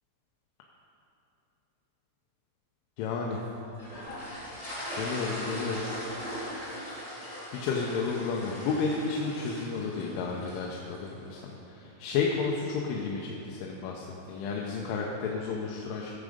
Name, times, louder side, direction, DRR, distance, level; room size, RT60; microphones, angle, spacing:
voice 1, 3.0-3.4 4.9-5.8 6.8-16.1, left 5 dB, 80° left, -1 dB, 3.2 m, -32 dB
sound 1, 3.8-11.1, equal, 10° left, 1.7 m, -39 dB
17.0 x 7.4 x 5.1 m, 2.9 s
omnidirectional pair, 5.9 m